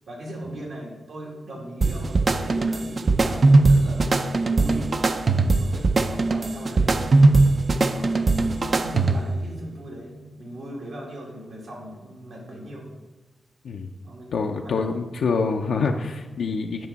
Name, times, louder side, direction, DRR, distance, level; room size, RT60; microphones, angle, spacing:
voice 1, 0.1-5.2 5.5-6.9 7.9-12.9 14.0-14.3 14.5-14.9, right 1 dB, 75° right, -3 dB, 2.4 m, -39 dB
sound 1, 1.8-9.4, right 3 dB, 45° right, 0.5 m, -20 dB
voice 2, 14.3-16.9, left 4 dB, 85° left, 1 dB, 0.5 m, -26 dB
9.4 x 5.3 x 4.0 m, 1.1 s
cardioid pair, 75°, 0 cm